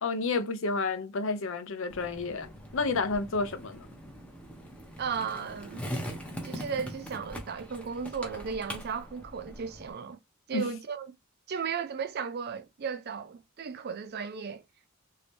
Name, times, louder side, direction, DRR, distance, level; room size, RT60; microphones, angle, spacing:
voice 1, 0.0-3.9 10.5-10.7, left 3 dB, 60° left, 0.6 m, -30 dB
Skateboard, 1.9-9.9, equal, 5° left, 0.7 m, -42 dB
voice 2, 5.0-5.9 6.4-10.2 10.5-11.1 11.5-14.6, right 6 dB, 45° right, 0.4 m, -35 dB
3.1 x 2.7 x 3.3 m
head